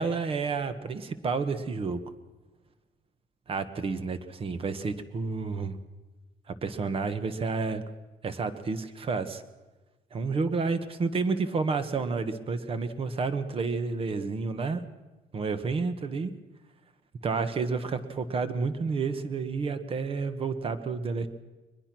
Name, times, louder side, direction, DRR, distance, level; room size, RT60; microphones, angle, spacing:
voice 1, 0.0-2.0 3.5-5.8 6.5-7.8 8.2-9.4 10.1-14.8 15.3-16.3 17.2-21.3, right 4 dB, 35° right, 10 dB, 1.3 m, -30 dB
22.5 x 21.0 x 6.2 m, 1.2 s
cardioid pair, 160°, 16 cm